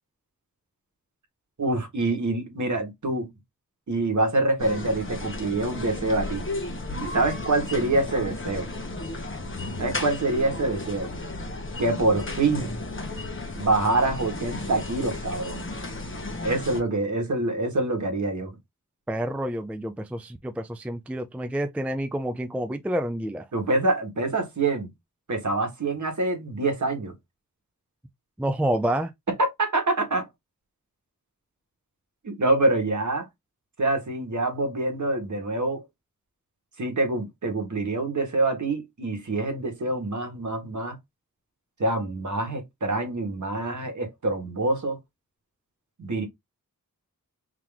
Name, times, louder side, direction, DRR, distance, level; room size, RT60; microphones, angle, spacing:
voice 1, 1.6-3.3 3.9-6.4 7.0-8.7 9.8-11.1 11.8-12.7 13.6-15.6 16.4-18.5 23.5-24.9 25.3-27.1 29.4-30.3 32.2-33.3 33.8-35.8 36.8-41.0 41.8-45.0 46.0-46.3, right 2 dB, 55° right, 1.6 m, -26 dB
sound 1, 4.6-16.8, left 2 dB, 35° left, 1.1 m, -34 dB
voice 2, 19.1-23.5 28.4-29.1, right 1 dB, 5° right, 0.4 m, -28 dB
3.9 x 3.0 x 3.5 m
wide cardioid pair, 105°, 35 cm